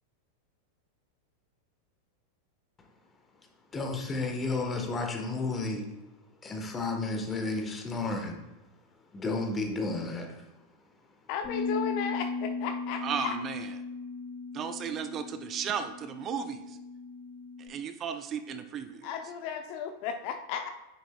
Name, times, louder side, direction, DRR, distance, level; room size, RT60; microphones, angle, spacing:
voice 1, 3.7-5.9 6.4-8.4 9.1-10.5, left 3 dB, 20° left, 3 dB, 1.3 m, -32 dB
voice 2, 11.3-13.3 19.0-20.7, left 7 dB, 45° left, 7 dB, 0.7 m, -34 dB
Bass guitar, 11.4-17.7, left 4 dB, ahead, 2.8 m, -37 dB
voice 3, 13.0-13.7 14.5-16.8 17.6-19.1, right 7 dB, 30° right, 9 dB, 0.5 m, -35 dB
9.9 x 7.7 x 2.3 m, 1.1 s
figure-of-eight pair, 90°, 0 cm